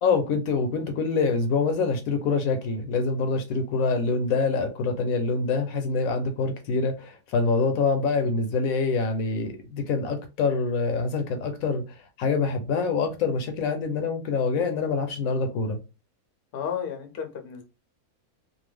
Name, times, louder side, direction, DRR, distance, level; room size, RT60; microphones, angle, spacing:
voice 1, 0.0-11.8 12.2-15.8, left 4 dB, 75° left, 1.0 m, -25 dB
voice 2, 16.5-17.6, left 8 dB, 55° left, 0.6 m, -32 dB
2.6 x 2.2 x 3.3 m
omnidirectional pair, 1.6 m